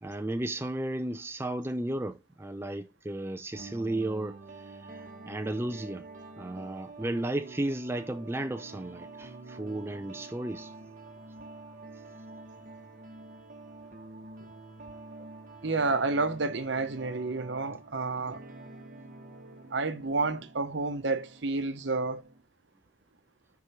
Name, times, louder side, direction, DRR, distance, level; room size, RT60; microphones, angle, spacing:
voice 1, 0.0-6.0 6.4-10.7, right 1 dB, 10° right, 0.4 m, -34 dB
sound 1, 3.5-22.4, right 3 dB, 40° right, 1.2 m, -47 dB
voice 2, 15.6-18.4 19.7-22.3, right 3 dB, 60° right, 0.9 m, -30 dB
5.0 x 4.6 x 5.6 m
head